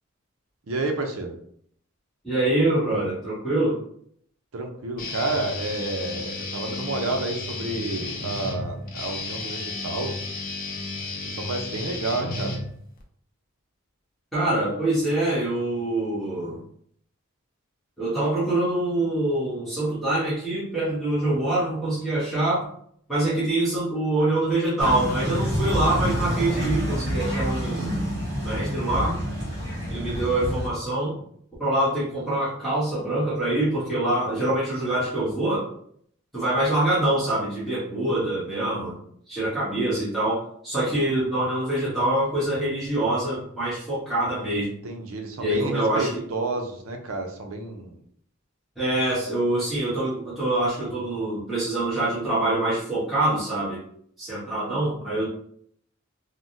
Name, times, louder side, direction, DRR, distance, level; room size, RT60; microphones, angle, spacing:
voice 1, 0.7-1.4 4.5-10.2 11.2-12.6 44.8-48.0, right 2 dB, 80° right, 4 dB, 0.6 m, -30 dB
voice 2, 2.2-3.8 14.3-16.6 18.0-22.6 23.1-28.1 28.4-29.2 29.9-31.2 31.6-35.6 36.3-39.0 39.3-44.7 45.4-46.1 48.8-53.8 54.2-55.3, right 1 dB, ahead, -12 dB, 1.1 m, -25 dB
Guitar, 5.0-13.0, left 3 dB, 40° left, 0.5 m, -33 dB
sound 1, 24.8-30.7, equal, 55° right, 0.9 m, -27 dB
3.4 x 2.1 x 2.6 m, 0.65 s
head